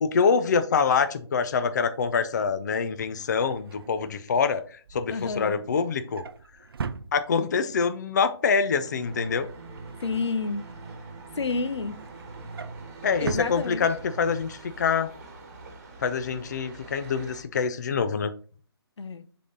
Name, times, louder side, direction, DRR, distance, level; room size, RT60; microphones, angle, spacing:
voice 1, 0.0-4.6 4.9-6.2 7.1-9.5 13.0-15.1 16.0-18.3, left 5 dB, 40° left, 0.4 m, -25 dB
Drawer open or close, 2.7-7.7 8.1-8.4 8.7-10.9 11.3-14.3 14.7-14.9 15.1-15.2, right 6 dB, 60° right, 0.5 m, -41 dB
voice 2, 5.1-5.6 10.0-10.6 11.3-12.0 13.2-13.8 19.0-19.3, left 4 dB, 90° left, 0.7 m, -29 dB
sound 1, 8.8-14.4, right 3 dB, 75° right, 1.1 m, -44 dB
sound 2, 9.0-17.4, right 3 dB, 35° right, 1.4 m, -46 dB
6.7 x 3.8 x 3.8 m
hypercardioid pair, 170°, 14 cm